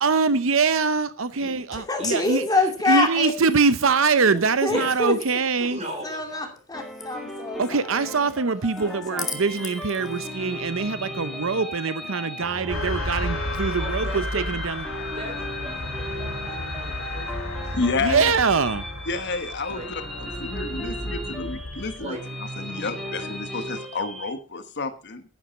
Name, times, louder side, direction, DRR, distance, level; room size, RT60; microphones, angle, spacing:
voice 1, 0.0-2.5 2.9-5.8 7.6-14.9 18.0-18.9, right 4 dB, 70° right, 0.7 m, -23 dB
voice 2, 1.7-3.3 4.3-5.2 6.0-7.6 8.8-9.4, left 3 dB, 20° left, 2.5 m, -26 dB
voice 3, 5.7-6.6 13.7-14.4 15.1-17.8 19.7-19.9 22.0-22.2 22.6-23.3, equal, 30° right, 5.0 m, -39 dB
sound 1, 6.7-24.3, equal, ahead, 2.7 m, -36 dB
sound 2, 12.7-22.1, left 1 dB, 80° left, 2.9 m, -33 dB
voice 4, 17.7-18.3 19.1-20.0 20.4-22.2 22.6-25.2, left 3 dB, 55° left, 1.3 m, -30 dB
11.5 x 10.5 x 5.2 m
head